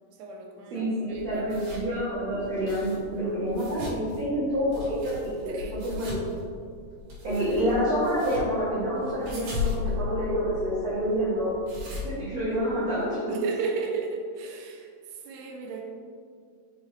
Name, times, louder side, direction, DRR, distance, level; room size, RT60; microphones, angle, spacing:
voice 1, 0.2-1.9 5.5-5.7 13.3-15.9, right 4 dB, 85° right, 1 dB, 2.8 m, -34 dB
voice 2, 0.7-6.3 7.2-11.5 12.0-13.2, equal, 50° right, -13 dB, 2.6 m, -28 dB
sound 1, 1.1-13.0, left 4 dB, 70° right, 3.4 m, -37 dB
7.1 x 6.8 x 2.9 m, 2.2 s
omnidirectional pair, 4.6 m